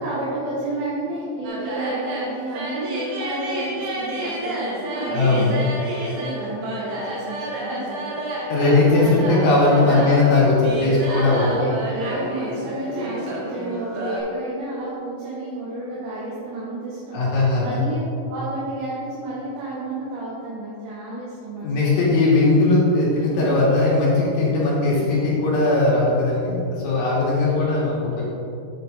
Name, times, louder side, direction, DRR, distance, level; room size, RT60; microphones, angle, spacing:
voice 1, 0.0-8.2 9.7-10.1 11.1-17.2 17.6-18.0 18.3-22.1 23.3-23.6, right 1 dB, 75° right, -8 dB, 3.3 m, -31 dB
sound 1, 1.4-14.2, right 1 dB, 55° right, 2.2 m, -30 dB
voice 2, 5.1-5.6 8.5-11.4 17.1-17.8 21.6-28.3, left 2 dB, 70° left, -6 dB, 4.1 m, -19 dB
9.5 x 7.8 x 4.0 m, 2.7 s
omnidirectional pair, 4.5 m